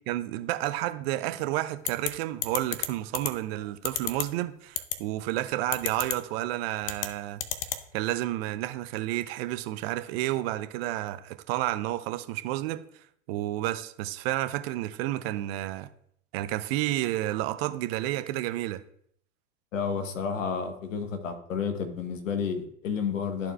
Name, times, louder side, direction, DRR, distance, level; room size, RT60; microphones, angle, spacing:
voice 1, 0.1-7.4 7.9-12.8 13.3-15.9 16.3-18.8, right 15 dB, 50° right, 10 dB, 0.6 m, -31 dB
sound 1, 1.9-2.1 2.4-2.9 3.1-3.3 3.8-4.2 4.8-4.9 5.7-6.1 6.8-7.1 7.4-7.8, left 11 dB, 45° left, 0.7 m, -28 dB
voice 2, 19.7-23.5, left 6 dB, 75° left, 7 dB, 1.3 m, -31 dB
13.0 x 4.5 x 2.3 m, 0.66 s
hypercardioid pair, 90°, 39 cm